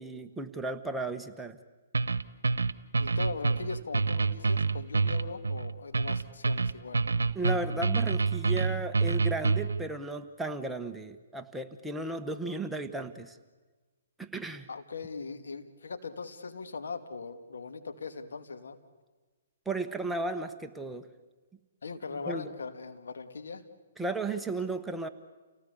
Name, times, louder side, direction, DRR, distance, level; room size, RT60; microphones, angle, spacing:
voice 1, 0.0-1.6 7.3-13.4 14.2-14.7 19.7-21.1 22.3-22.5 24.0-25.1, right 2 dB, 5° right, 5 dB, 1.1 m, -35 dB
sound 1, 1.9-9.8, right 4 dB, 85° right, 0.9 m, -27 dB
voice 2, 3.0-7.0 14.7-18.8 21.8-23.6, left 4 dB, 75° left, 7 dB, 2.4 m, -40 dB
29.5 x 18.0 x 8.5 m, 1.3 s
hypercardioid pair, 140°, 0 cm